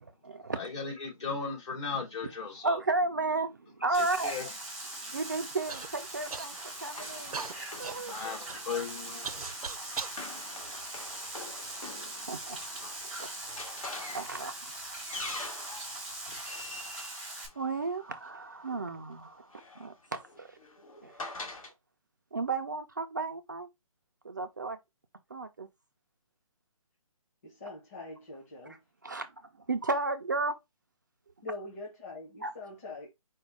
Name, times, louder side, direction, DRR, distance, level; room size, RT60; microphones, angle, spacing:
voice 1, 0.0-0.6 2.6-4.4 5.1-6.5 6.8-7.4 7.8-8.1 9.3-9.4 9.7-9.8 10.4-10.5 11.0-11.2 12.2-13.3 14.1-14.7 17.6-20.6 21.0-21.2 22.3-23.7 24.2-24.8 25.3-25.7 29.0-29.3 29.7-30.6 32.4-32.5, right 3 dB, 35° right, 0.3 m, -33 dB
voice 2, 0.6-2.8 4.2-4.5 8.1-9.4, left 5 dB, 50° left, 2.9 m, -36 dB
sound 1, 3.9-17.5, right 2 dB, ahead, 0.7 m, -41 dB
Run, 5.6-18.2 19.2-21.7, left 2 dB, 70° left, 1.8 m, -46 dB
Human voice / Cough, 5.7-5.9 6.3-6.8 7.3-10.2 10.9-11.7 12.5-12.6 13.3-13.6, right 5 dB, 90° right, 0.6 m, -41 dB
voice 3, 27.4-28.8 31.4-33.1, left 3 dB, 25° left, 1.1 m, -43 dB
5.0 x 2.2 x 4.6 m
hypercardioid pair, 170°, 18 cm